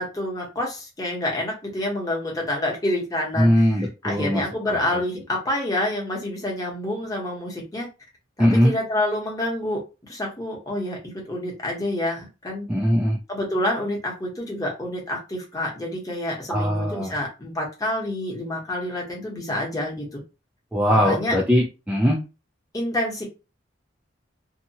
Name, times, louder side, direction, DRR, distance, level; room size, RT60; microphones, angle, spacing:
voice 1, 0.0-7.9 8.4-12.7 13.3-20.2 20.9-21.4 22.7-23.2, left 1 dB, 20° left, 0.9 m, -28 dB
voice 2, 3.4-5.0 8.4-8.8 12.7-13.2 16.5-17.1 20.7-22.2, equal, 5° right, 0.3 m, -21 dB
2.7 x 2.3 x 2.8 m
head